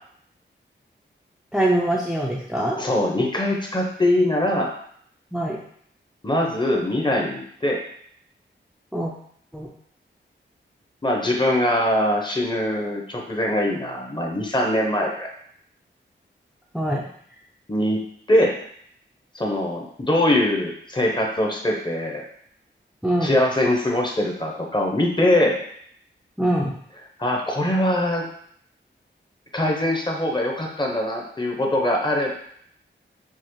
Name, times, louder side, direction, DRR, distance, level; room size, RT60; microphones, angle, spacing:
voice 1, 1.5-2.8 5.3-5.6 8.9-9.1 9.5-9.7 16.7-17.0 23.0-23.4 26.4-26.8, right 1 dB, 5° right, -3 dB, 0.5 m, -23 dB
voice 2, 2.7-4.7 6.2-7.8 11.0-15.3 17.7-18.0 18.3-18.5 19.3-22.2 23.2-25.6 27.2-28.3 29.5-32.4, left 1 dB, 25° left, 0 dB, 0.8 m, -22 dB
5.5 x 2.0 x 3.1 m, 0.65 s
wide cardioid pair, 75°, 20 cm